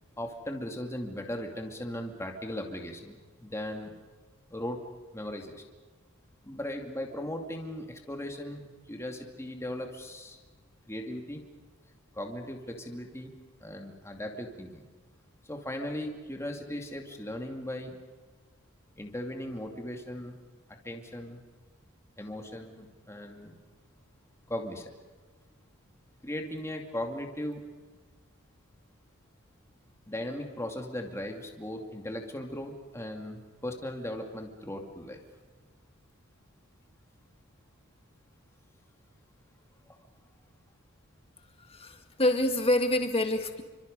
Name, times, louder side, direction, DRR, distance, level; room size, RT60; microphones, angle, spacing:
voice 1, 0.2-3.9 4.5-4.8 5.1-5.6 6.4-10.4 10.9-11.4 12.1-13.3 13.6-14.8 15.4-18.0 19.0-20.4 20.8-21.4 22.2-23.5 24.5-24.9 26.2-27.6 30.1-35.2, left 1 dB, 15° left, 3 dB, 2.4 m, -38 dB
voice 2, 41.7-43.6, left 1 dB, 30° left, 6 dB, 2.0 m, -26 dB
29.0 x 25.5 x 5.4 m, 1.3 s
head